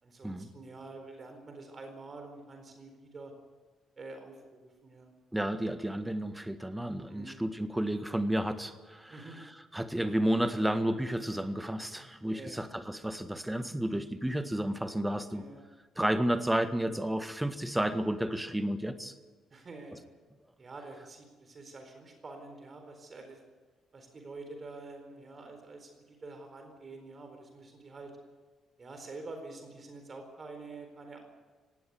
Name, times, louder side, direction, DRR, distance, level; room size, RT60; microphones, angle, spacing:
voice 1, 0.0-3.3 4.0-5.1 7.0-7.4 9.1-9.4 12.3-12.7 15.3-15.6 19.5-20.0 20.6-23.4 23.9-28.1 28.8-31.2, right 3 dB, 35° right, 5 dB, 4.4 m, -47 dB
voice 2, 5.3-9.2 9.7-15.4 16.0-19.1, right 1 dB, 10° right, 11 dB, 1.7 m, -31 dB
18.5 x 17.0 x 9.5 m, 1.3 s
figure-of-eight pair, 40°, 0 cm